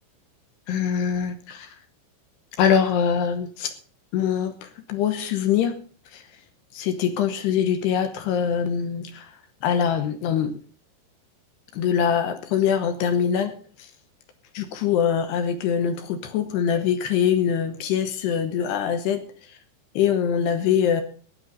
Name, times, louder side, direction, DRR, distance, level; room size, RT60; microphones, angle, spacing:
voice 1, 0.7-1.7 2.6-3.7 4.1-5.8 6.1-6.2 6.7-9.3 9.6-10.5 11.7-13.6 14.5-19.2 20.0-21.0, left 8 dB, 75° left, 8 dB, 2.6 m, -23 dB
16.5 x 9.3 x 5.3 m, 0.41 s
omnidirectional pair, 5.9 m